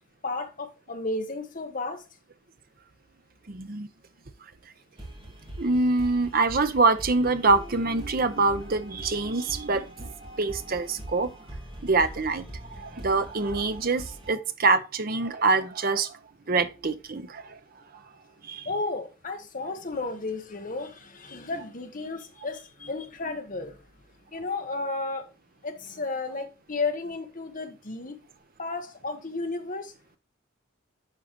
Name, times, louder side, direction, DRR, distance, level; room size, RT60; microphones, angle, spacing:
voice 1, 0.2-2.0 18.6-23.8 24.3-25.3 25.6-28.2 28.6-29.9, left 3 dB, 40° left, 1.1 m, -33 dB
voice 2, 3.5-3.9 5.6-11.3 11.8-12.4 12.7-16.1 16.5-17.6 18.4-18.7, right 3 dB, 45° right, 0.7 m, -25 dB
sound 1, 5.0-14.3, right 1 dB, 25° right, 2.3 m, -43 dB
11.0 x 3.8 x 3.1 m
head